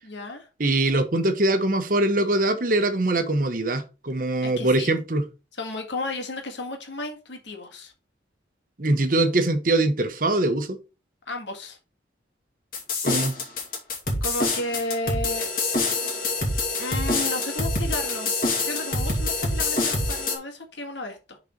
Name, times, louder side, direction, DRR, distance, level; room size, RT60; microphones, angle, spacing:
voice 1, 0.0-0.5 4.4-4.9 5.5-7.9 11.3-11.8 14.2-16.0 16.8-21.4, left 2 dB, 75° left, 1.9 m, -33 dB
voice 2, 0.6-5.2 8.8-10.8 13.0-13.3, right 2 dB, 45° right, 1.0 m, -22 dB
sound 1, 12.7-20.3, left 2 dB, 50° left, 2.3 m, -26 dB
6.8 x 4.1 x 5.1 m
head